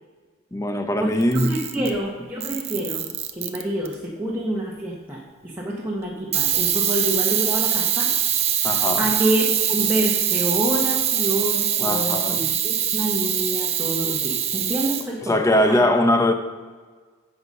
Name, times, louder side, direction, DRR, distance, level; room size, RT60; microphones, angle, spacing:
voice 1, 0.5-1.9 8.6-9.1 11.8-12.4 15.3-16.3, left 1 dB, 15° left, 0.7 m, -21 dB
Camera, 1.2-2.0 2.4-3.9 6.3-15.0, right 10 dB, 30° right, 0.6 m, -23 dB
voice 2, 1.4-3.0 3.3-8.1 8.6-15.8, right 1 dB, 10° right, 1.2 m, -27 dB
8.0 x 7.9 x 5.4 m
head